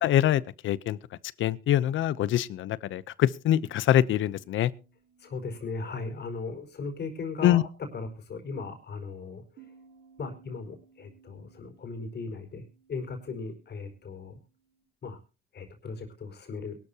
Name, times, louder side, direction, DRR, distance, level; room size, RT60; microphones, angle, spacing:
voice 1, 0.0-1.0 1.4-4.7 7.4-7.6, left 12 dB, 75° left, 0.8 m, -24 dB
sound 1, 3.6-8.2 9.6-14.8, right 6 dB, 80° right, 7.4 m, -61 dB
voice 2, 5.2-7.7 7.9-9.6 10.2-12.6 12.9-14.4 15.0-15.2 15.5-16.8, left 4 dB, 55° left, 4.8 m, -37 dB
22.5 x 12.5 x 2.9 m
cardioid pair, 90°, 20 cm